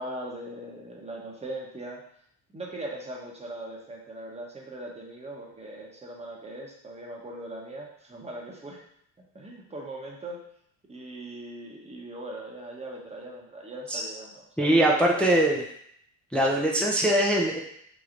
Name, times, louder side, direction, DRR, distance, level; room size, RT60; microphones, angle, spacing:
voice 1, 0.0-2.0 2.5-8.8 9.3-10.4 10.9-15.3, right 1 dB, 15° right, -2 dB, 0.8 m, -40 dB
voice 2, 14.6-15.6 16.3-17.6, right 1 dB, 5° left, -1 dB, 0.4 m, -22 dB
3.0 x 3.0 x 2.5 m, 0.69 s
supercardioid pair, 85°, 44 cm